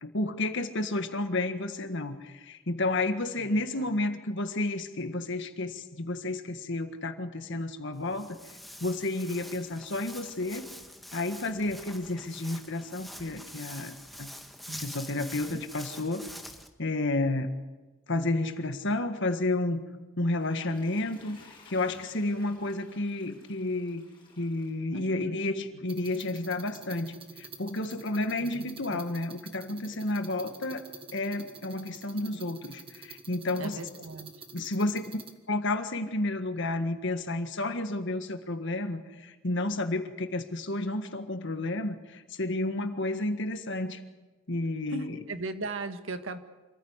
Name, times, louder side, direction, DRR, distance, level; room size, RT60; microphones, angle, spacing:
voice 1, 0.0-8.4 8.8-10.6 11.1-14.3 14.8-16.3 16.8-17.6 18.1-19.9 20.2-24.0 24.4-30.9 31.1-33.8 34.5-35.2 35.5-44.0 44.5-45.2, left 2 dB, 60° left, 8 dB, 1.7 m, -31 dB
voice 2, 3.4-4.0 14.7-15.6 24.9-25.4 25.7-25.8 28.4-29.0 33.5-34.4 44.9-46.4, right 2 dB, 65° right, 8 dB, 1.6 m, -39 dB
Walk footsteps, 7.9-16.7, left 1 dB, ahead, 1.5 m, -45 dB
Water / Toilet flush, 20.2-25.5 25.9-26.0, left 3 dB, 25° left, 6.3 m, -56 dB
sound 1, 25.9-35.3, right 4 dB, 25° right, 1.7 m, -48 dB
26.5 x 15.0 x 8.2 m, 1.2 s
head